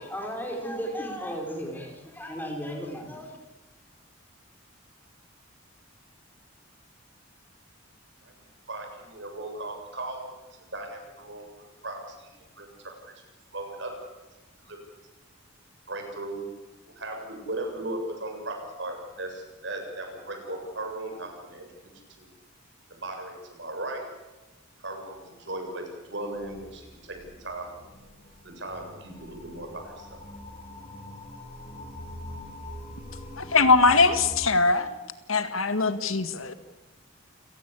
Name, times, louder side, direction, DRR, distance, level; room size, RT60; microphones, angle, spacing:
voice 1, 0.0-3.4, equal, 10° left, 3 dB, 4.8 m, -35 dB
voice 2, 8.7-10.4 10.7-12.7 13.5-13.9 14.7-14.8 15.9-16.4 17.0-22.3 22.9-24.0 24.8-27.9 28.4-30.2, right 2 dB, 60° right, 3 dB, 7.6 m, -37 dB
sound 1, 26.3-34.5, left 1 dB, 30° left, 3.4 m, -43 dB
voice 3, 33.4-34.9 35.3-36.5, left 4 dB, 85° left, 10 dB, 2.0 m, -21 dB
29.5 x 17.5 x 8.5 m, 1.1 s
head